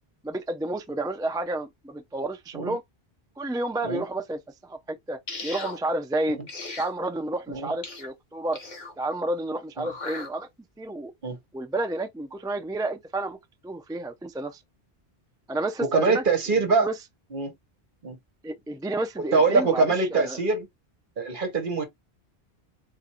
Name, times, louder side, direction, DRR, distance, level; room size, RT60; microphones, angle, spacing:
voice 1, 0.2-2.8 3.4-6.4 6.8-8.6 9.0-10.5 10.8-11.1 11.5-13.4 13.6-14.6 15.5-16.2 16.8-17.0 18.4-20.4, right 2 dB, 5° right, 0.3 m, -30 dB
sound 1, 5.3-5.8 6.5-6.9 7.8-8.1 8.5-8.9 9.8-10.3, left 3 dB, 45° left, 1.2 m, -37 dB
voice 2, 15.8-16.9 17.3-17.5 18.0-18.2 19.3-20.7 21.2-21.8, right 4 dB, 55° right, 1.2 m, -24 dB
3.9 x 2.5 x 4.3 m
omnidirectional pair, 1.1 m